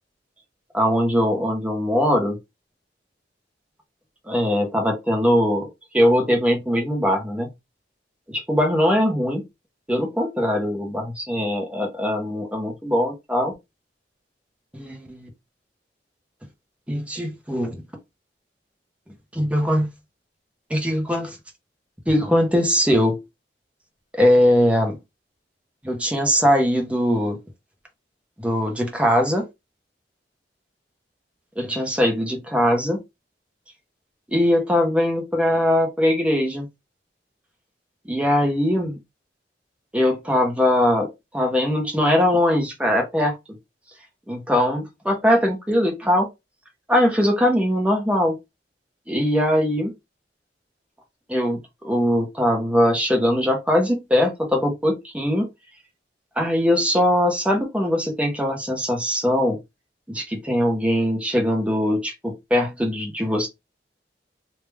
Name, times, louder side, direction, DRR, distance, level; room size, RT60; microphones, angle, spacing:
voice 1, 0.7-2.4 4.3-5.7 5.9-7.5 8.3-9.4 9.9-13.5 14.7-15.3 16.9-17.8 19.3-19.9 20.7-21.4 22.1-23.2 24.1-25.0 25.8-27.4 28.4-29.4 31.6-33.0 34.3-36.7 38.0-39.0 39.9-43.3 44.3-46.3 46.9-48.4 49.1-49.9 51.3-55.5 56.4-59.6 60.1-63.5, equal, 5° right, 1.1 m, -21 dB
3.3 x 2.9 x 3.4 m
head